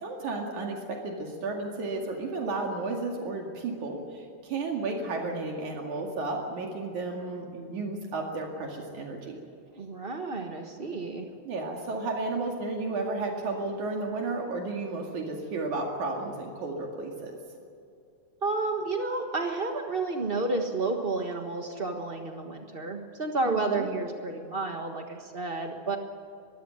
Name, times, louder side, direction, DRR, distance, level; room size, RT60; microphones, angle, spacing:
voice 1, 0.0-9.4 11.5-17.4 23.4-23.9, right 3 dB, 70° right, 1 dB, 3.5 m, -33 dB
voice 2, 9.7-11.3 18.4-26.0, right 3 dB, 85° right, 3 dB, 0.5 m, -31 dB
23.0 x 15.5 x 8.9 m, 2.5 s
omnidirectional pair, 3.7 m